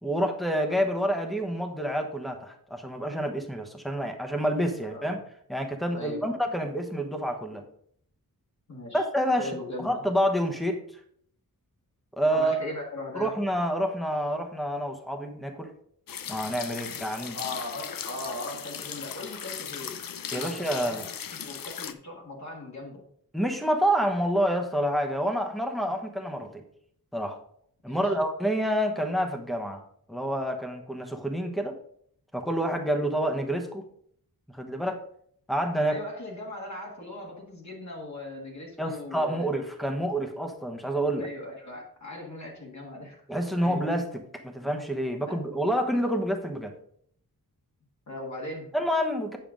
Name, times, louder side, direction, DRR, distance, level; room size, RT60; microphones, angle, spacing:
voice 1, 0.0-5.2 5.5-7.6 8.9-9.5 9.8-10.8 12.2-12.6 13.1-15.7 16.3-17.4 20.3-21.1 23.3-26.6 27.1-27.4 27.8-29.8 30.1-31.7 32.3-33.8 34.5-35.0 35.5-36.0 38.8-41.3 43.3-46.7 48.7-49.4, equal, ahead, 4 dB, 1.1 m, -28 dB
voice 2, 4.8-5.2 5.9-6.3 8.7-9.1 9.4-10.1 12.3-13.3 17.3-20.0 20.3-21.0 21.3-23.0 27.8-28.1 35.8-39.5 41.1-43.2 43.6-43.8 45.3-45.4 48.1-48.7, left 1 dB, 50° left, -2 dB, 1.9 m, -39 dB
sound 1, 16.1-21.9, left 8 dB, 65° left, 0.6 m, -38 dB
8.9 x 6.7 x 3.8 m, 0.64 s
wide cardioid pair, 145°, 36 cm